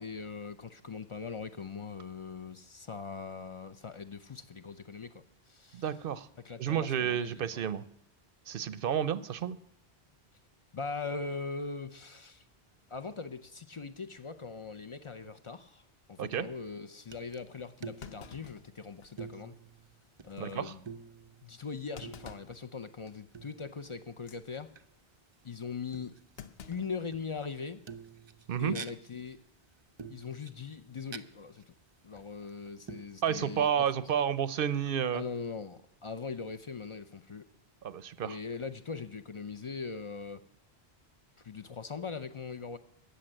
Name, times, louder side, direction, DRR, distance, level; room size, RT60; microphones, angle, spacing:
voice 1, 0.0-5.8 6.4-7.7 10.7-12.4 12.9-15.8 16.1-19.6 20.2-20.8 21.4-24.7 25.4-26.2 26.7-27.8 28.6-29.4 30.1-31.7 32.0-33.7 35.1-37.4 38.2-40.4 41.4-42.8, left 5 dB, 40° left, 10 dB, 0.5 m, -41 dB
voice 2, 5.7-6.3 6.6-7.8 8.5-9.6 16.2-16.5 20.4-20.7 28.5-28.8 33.2-35.2 37.8-38.4, right 9 dB, 65° right, 15 dB, 0.8 m, -31 dB
Thump thud, 17.1-17.2 18.0-19.3 19.7-19.8 20.3-20.5 21.9-22.6 23.1-23.3 24.1-24.4 26.4-27.6 27.9-28.0 29.1-29.5, left 6 dB, 70° left, 1.0 m, -50 dB
sound 1, 17.1-17.4 17.7-18.9 19.2-20.4 20.7-22.8 23.3-24.1 24.7-24.9 25.9-26.6 27.1-27.5 27.9-29.3 30.0-31.2 31.6-31.7 32.2-32.5 32.9-33.0, right 6 dB, 40° right, 0.4 m, -48 dB
14.0 x 6.7 x 8.8 m, 0.78 s
omnidirectional pair, 1.1 m